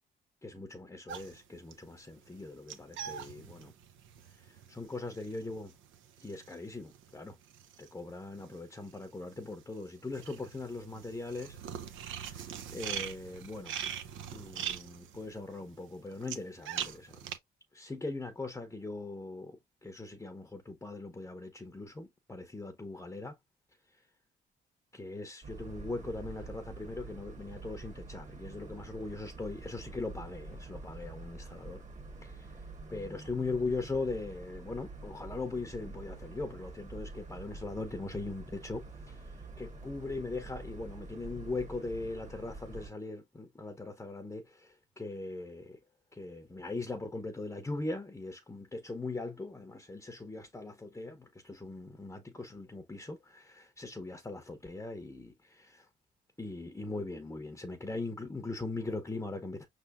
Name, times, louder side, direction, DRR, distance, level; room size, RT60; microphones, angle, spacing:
voice 1, 0.4-3.7 4.4-5.7 6.2-7.4 7.8-11.6 11.9-13.8 14.3-17.2 17.7-23.4 24.9-31.8 32.2-32.6 32.9-45.8 46.1-55.9 56.4-59.7, left 3 dB, 15° left, 0.8 m, -40 dB
sound 1, 1.1-8.6 8.9-17.4, right 9 dB, 80° right, 0.8 m, -42 dB
sound 2, 25.4-42.9, right 3 dB, 35° right, 1.5 m, -47 dB
5.6 x 3.4 x 2.4 m
cardioid pair, 90°, 20 cm